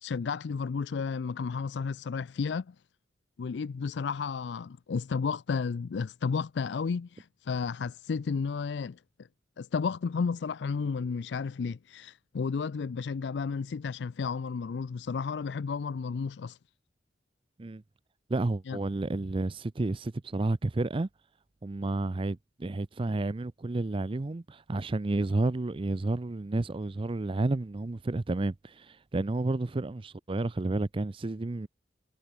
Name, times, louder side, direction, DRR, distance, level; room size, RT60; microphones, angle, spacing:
voice 1, 0.0-2.8 3.4-9.3 9.6-16.6 18.7-18.8, left 5 dB, 65° left, 0.4 m, -32 dB
voice 2, 18.3-21.1 21.6-31.7, right 2 dB, 30° right, 0.5 m, -31 dB
head